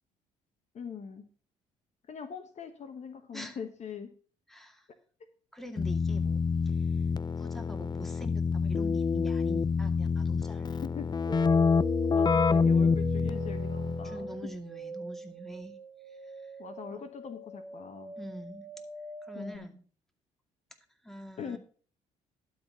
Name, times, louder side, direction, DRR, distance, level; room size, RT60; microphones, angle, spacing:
voice 1, 0.7-1.3 2.1-4.1 10.8-11.1 12.1-14.5 16.6-18.1 19.3-19.7 21.4-21.6, left 6 dB, 50° left, 8 dB, 1.2 m, -42 dB
voice 2, 4.5-4.9 5.5-6.4 7.4-10.8 14.0-15.8 16.4-16.5 16.9-17.0 18.2-18.7 19.2-19.8 21.0-21.6, equal, ahead, 5 dB, 2.3 m, -44 dB
Keyboard (musical), 5.8-14.2, left 5 dB, 30° left, 0.5 m, -27 dB
sound 1, 11.3-19.6, right 3 dB, 15° right, 2.4 m, -42 dB
12.0 x 4.2 x 7.5 m, 0.42 s
supercardioid pair, 65°, 15 cm